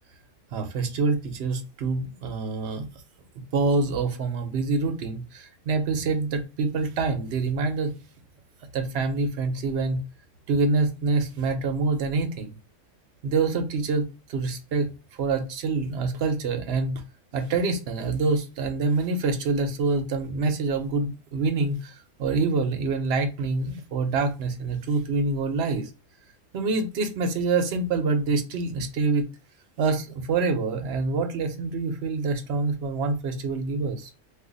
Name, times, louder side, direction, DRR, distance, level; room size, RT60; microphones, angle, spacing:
voice 1, 0.5-2.9 3.5-7.9 8.7-10.0 10.5-12.6 13.2-14.0 14.3-14.9 15.2-17.0 17.3-25.9 26.5-29.2 29.8-34.1, right 3 dB, 60° right, 0.8 m, -26 dB
2.6 x 2.4 x 3.8 m
omnidirectional pair, 1.3 m